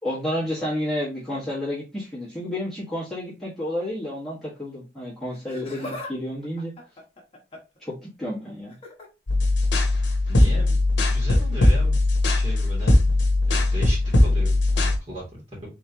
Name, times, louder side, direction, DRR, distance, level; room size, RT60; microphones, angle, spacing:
voice 1, 0.0-6.7 7.8-8.7, left 1 dB, ahead, -9 dB, 1.4 m, -30 dB
Laughter, 5.3-6.1 6.4-7.8 8.7-9.1 10.4-10.6 11.5-11.6, left 2 dB, 35° left, 0.9 m, -39 dB
sound 1, 9.3-15.0, left 2 dB, 80° left, 0.8 m, -20 dB
voice 2, 10.3-12.0 12.3-13.0 13.4-15.2, equal, 35° right, -5 dB, 2.4 m, -36 dB
3.6 x 3.1 x 2.8 m, 0.28 s
head